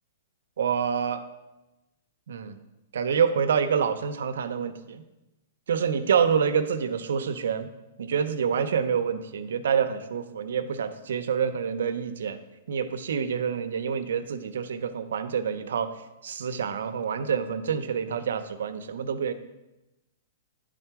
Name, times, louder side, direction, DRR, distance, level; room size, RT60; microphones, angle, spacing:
voice 1, 0.6-1.2 2.3-2.6 2.9-5.0 5.7-7.7 8.0-12.4 12.7-15.9 16.2-19.3, right 7 dB, 80° right, 9 dB, 0.6 m, -27 dB
10.0 x 3.7 x 4.6 m, 1.0 s
hypercardioid pair, 165°, 0 cm